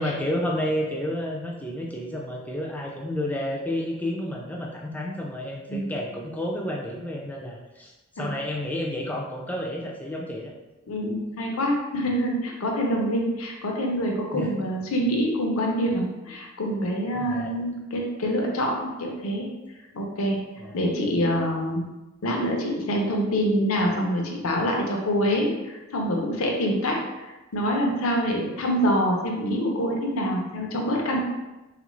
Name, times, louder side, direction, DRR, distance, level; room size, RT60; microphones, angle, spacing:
voice 1, 0.0-10.5 14.3-14.5 17.1-17.5 20.6-20.8, left 1 dB, 5° left, -1 dB, 0.3 m, -30 dB
voice 2, 10.9-19.5 19.9-20.4 20.7-21.8 22.2-31.2, equal, 80° left, 0 dB, 0.6 m, -26 dB
3.6 x 2.5 x 3.0 m, 1.1 s
head